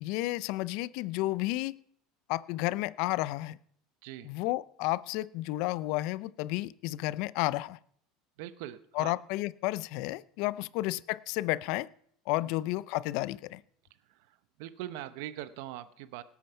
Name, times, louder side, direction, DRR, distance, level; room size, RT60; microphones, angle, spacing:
voice 1, 0.0-1.7 2.3-3.6 4.2-7.8 9.0-11.9 12.3-13.6, left 18 dB, 65° left, 20 dB, 0.5 m, -32 dB
voice 2, 4.0-4.3 8.4-9.1 12.4-12.6 14.0-16.2, right 13 dB, 75° right, 14 dB, 0.8 m, -42 dB
18.0 x 8.6 x 5.6 m, 0.65 s
supercardioid pair, 100°, 0 cm